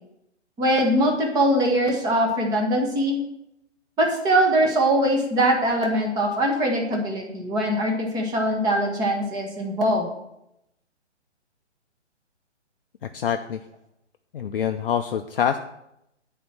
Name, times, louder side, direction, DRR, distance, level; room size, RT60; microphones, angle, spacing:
voice 1, 0.6-3.2 4.0-10.1, right 1 dB, 10° right, 1 dB, 1.1 m, -22 dB
voice 2, 13.0-13.6 14.3-15.6, left 8 dB, 50° left, 5 dB, 0.5 m, -25 dB
9.1 x 4.3 x 5.9 m, 0.82 s
figure-of-eight pair, 140°, 35 cm